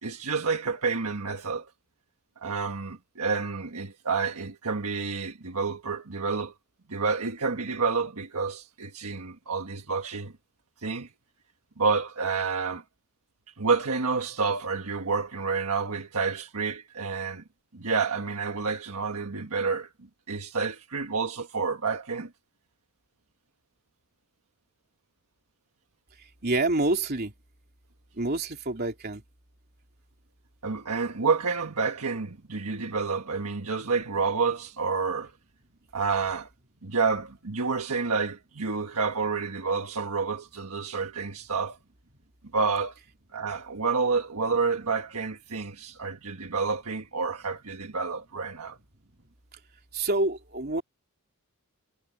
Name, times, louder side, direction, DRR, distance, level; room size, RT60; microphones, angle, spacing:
voice 1, 0.0-1.7 2.4-6.5 6.9-10.3 10.8-11.1 11.8-12.8 13.6-17.4 17.7-19.9 20.3-22.3 30.6-35.3 35.9-36.5 36.8-41.8 42.5-43.0 43.3-48.8, right 4 dB, 85° right, 1.5 m, -29 dB
voice 2, 26.4-27.3 28.1-29.2 49.9-50.8, right 2 dB, 45° right, 3.2 m, -27 dB
head